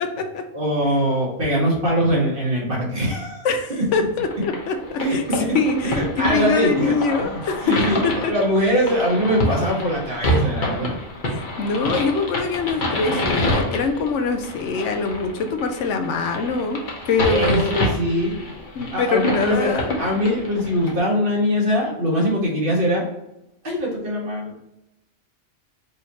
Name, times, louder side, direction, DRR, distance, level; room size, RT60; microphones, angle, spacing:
voice 1, 0.0-0.5 3.4-7.8 8.0-8.3 11.3-16.8 17.1-17.8 18.7-19.9, left 4 dB, 80° left, 6 dB, 1.0 m, -24 dB
voice 2, 0.5-3.5 5.0-5.6 5.8-7.0 7.2-10.9 17.3-18.4 18.9-23.1 23.6-24.6, equal, 45° right, -3 dB, 1.6 m, -22 dB
sound 1, 4.2-20.9, left 1 dB, 45° left, 1.1 m, -27 dB
4.8 x 2.9 x 2.8 m, 0.88 s
omnidirectional pair, 1.2 m